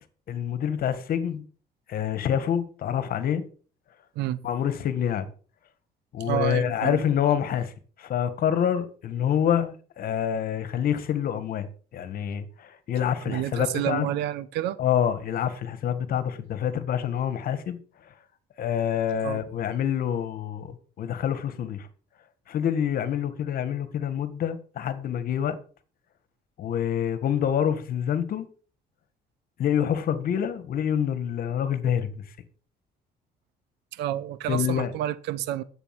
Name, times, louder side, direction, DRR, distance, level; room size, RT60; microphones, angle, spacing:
voice 1, 0.3-1.4 1.9-3.4 4.4-5.3 6.1-7.7 8.0-14.1 14.8-17.8 18.6-21.9 22.5-25.6 26.6-28.5 29.6-32.2 34.5-34.9, left 9 dB, 60° left, 1.9 m, -27 dB
voice 2, 6.2-7.0 13.3-14.8 19.2-19.4 33.9-35.6, right 12 dB, 85° right, 1.0 m, -29 dB
11.0 x 8.5 x 6.0 m
cardioid pair, 110°, 17 cm